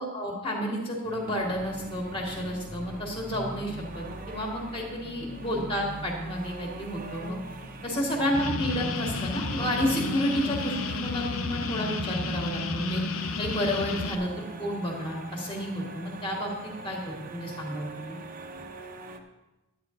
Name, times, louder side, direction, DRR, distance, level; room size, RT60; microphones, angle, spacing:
voice 1, 0.0-7.4 7.8-13.0 13.4-14.3 14.6-16.5 16.8-18.2, equal, 25° left, -1 dB, 2.1 m, -31 dB
sound 1, 1.0-19.2, right 2 dB, 40° right, 0.8 m, -41 dB
sound 2, 1.4-10.1, equal, 45° left, 1.4 m, -45 dB
sound 3, 8.3-14.2, left 4 dB, 75° left, 0.7 m, -33 dB
11.0 x 9.9 x 3.9 m, 1.1 s
head